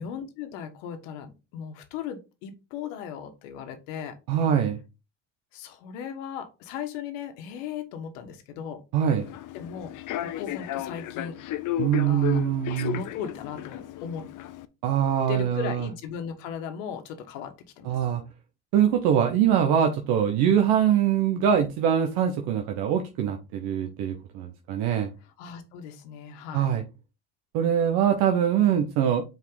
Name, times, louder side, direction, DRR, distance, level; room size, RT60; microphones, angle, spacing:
voice 1, 0.0-4.2 5.5-8.8 9.5-11.4 12.1-12.4 12.7-14.3 15.3-18.0 25.4-26.7, left 7 dB, 85° left, 1.4 m, -37 dB
voice 2, 4.3-4.8 8.9-9.3 11.8-13.0 14.8-15.9 17.8-18.2 18.7-25.1 26.5-26.8 27.5-29.2, right 9 dB, 75° right, 1.1 m, -23 dB
Human voice / Subway metro underground, 9.2-14.6, left 13 dB, 55° left, 0.8 m, -34 dB
5.7 x 4.7 x 3.8 m
supercardioid pair, 85°, 38 cm